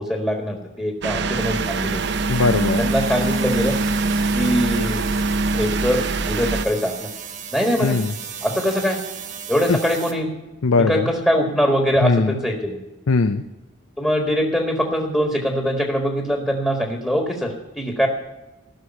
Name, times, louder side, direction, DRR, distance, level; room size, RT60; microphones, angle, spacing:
voice 1, 0.0-2.0 2.8-3.8 4.3-5.0 5.5-7.1 7.5-8.0 8.4-9.0 9.5-10.4 10.8-12.8 14.0-18.1, equal, 5° left, 2 dB, 1.5 m, -22 dB
snow blower pass by Montreal Canada, 1.0-6.7, right 3 dB, 55° right, 0.6 m, -23 dB
sound 1, 1.3-10.1, right 7 dB, 35° right, 1.4 m, -36 dB
voice 2, 2.3-2.8 7.8-8.1 9.7-9.8 10.6-11.1 12.0-12.4 13.1-13.4, left 4 dB, 85° left, 9 dB, 0.6 m, -19 dB
15.5 x 6.5 x 9.8 m, 1.0 s
head